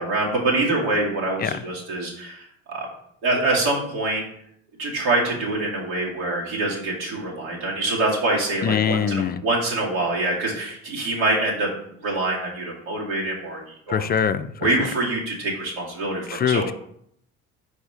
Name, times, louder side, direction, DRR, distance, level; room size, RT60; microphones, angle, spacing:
voice 1, 0.0-2.9 3.2-4.3 4.8-11.7 12.0-14.1 14.6-16.7, right 2 dB, 90° right, -3 dB, 2.3 m, -25 dB
voice 2, 8.6-9.4 13.9-14.8 16.3-16.7, left 7 dB, 35° left, 12 dB, 0.4 m, -23 dB
4.9 x 4.2 x 4.8 m, 0.70 s
supercardioid pair, 85°, 29 cm